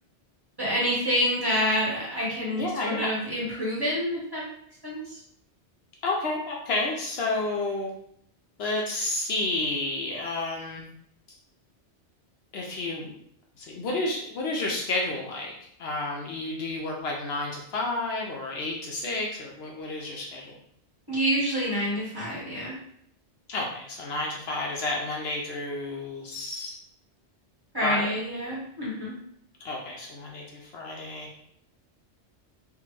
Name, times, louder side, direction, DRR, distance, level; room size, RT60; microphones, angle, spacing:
voice 1, 0.6-4.5 4.8-5.2 21.1-22.7 27.7-29.2, equal, 20° right, -7 dB, 0.8 m, -27 dB
voice 2, 2.6-3.1 6.0-7.9 8.6-10.8 12.5-13.1 13.6-15.5 15.8-20.5 23.5-26.8 27.8-28.2 29.6-31.3, left 2 dB, 65° left, -1 dB, 0.7 m, -31 dB
3.3 x 2.1 x 3.0 m, 0.70 s
omnidirectional pair, 1.2 m